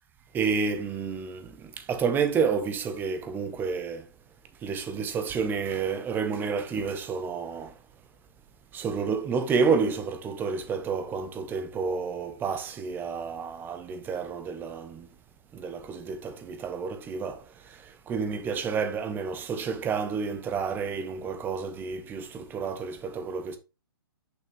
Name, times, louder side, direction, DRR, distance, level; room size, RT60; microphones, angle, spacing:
voice 1, 0.3-4.0 4.6-7.7 8.7-15.1 15.5-17.4 18.1-23.6, right 5 dB, 15° right, 0.9 m, -30 dB
6.4 x 5.6 x 3.4 m
hypercardioid pair, 130°, 12 cm